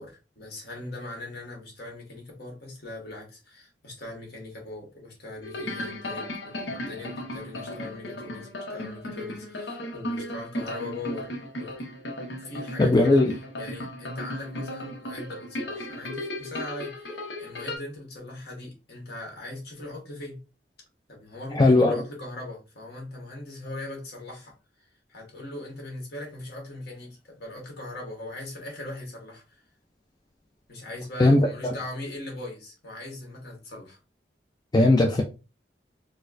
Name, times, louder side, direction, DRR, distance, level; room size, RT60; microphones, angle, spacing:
voice 1, 0.0-11.3 11.5-11.8 12.2-13.2 13.6-20.4 21.1-29.6 30.7-34.0, left 2 dB, 65° left, 1.5 m, -40 dB
sound 1, 5.4-17.8, left 1 dB, 80° left, 0.9 m, -36 dB
voice 2, 12.8-13.3 21.5-22.0 31.2-31.7 34.7-35.2, left 2 dB, 25° left, 0.4 m, -19 dB
4.2 x 2.2 x 2.5 m
head